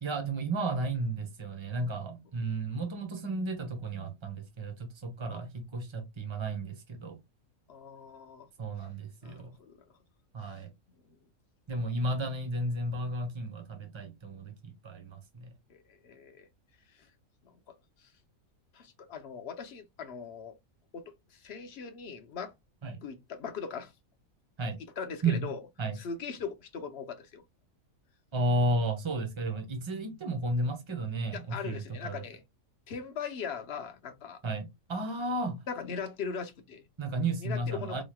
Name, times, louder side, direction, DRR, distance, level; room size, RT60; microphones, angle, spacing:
voice 1, 0.0-7.2 8.6-9.5 10.3-10.7 11.7-15.5 22.8-23.0 24.6-24.8 25.2-25.5 25.8-26.0 28.3-32.2 34.4-35.6 37.0-38.0, right 2 dB, 25° right, 0.9 m, -33 dB
voice 2, 7.7-8.5 9.2-9.8 10.4-10.6 11.1-11.2 15.7-16.5 16.9-17.1 17.4-17.5 18.0-18.1 18.7-20.6 20.9-22.5 23.0-23.9 25.0-25.6 25.9-27.4 31.3-32.4 32.9-34.4 35.7-36.8 37.4-38.0, left 6 dB, 55° left, 0.9 m, -40 dB
4.7 x 3.1 x 2.2 m
omnidirectional pair, 1.4 m